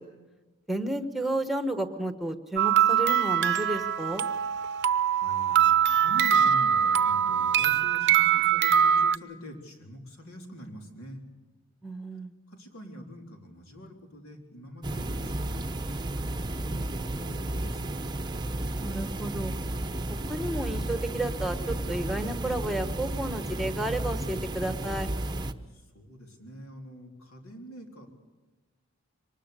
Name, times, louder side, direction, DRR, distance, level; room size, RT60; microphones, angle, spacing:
voice 1, 0.7-4.2 11.8-12.3 18.8-19.6 20.3-25.1, right 1 dB, ahead, 8 dB, 1.3 m, -32 dB
sound 1, 2.6-9.2, right 9 dB, 55° right, 0.7 m, -23 dB
voice 2, 4.7-11.2 12.5-17.9 25.7-28.1, equal, 75° left, 2 dB, 3.9 m, -45 dB
sound 2, 14.8-25.5, right 1 dB, 20° right, 0.9 m, -33 dB
23.5 x 20.0 x 6.9 m, 1.2 s
head